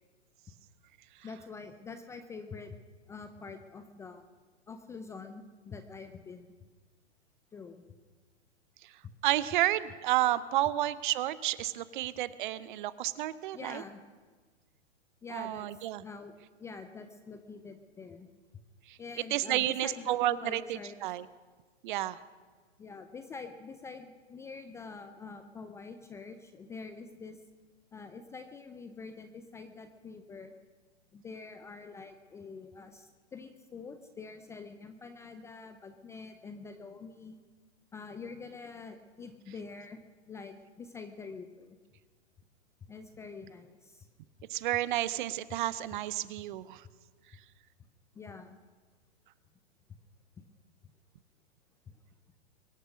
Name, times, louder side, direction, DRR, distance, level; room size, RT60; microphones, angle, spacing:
voice 1, 1.2-2.8 3.1-4.2 4.7-6.5 7.5-7.8 13.5-14.0 15.2-15.7 16.0-18.3 19.0-21.2 22.8-27.4 27.9-30.5 31.1-37.4 37.9-40.0 40.3-41.8 42.9-44.1 48.2-48.6, left 4 dB, 10° left, 8 dB, 0.4 m, -46 dB
voice 2, 9.2-13.8 15.3-16.0 18.9-19.0 19.3-21.3 21.8-22.2 44.5-46.8, right 14 dB, 45° right, 17 dB, 0.7 m, -31 dB
23.0 x 8.0 x 6.3 m, 1.4 s
hypercardioid pair, 125°, 34 cm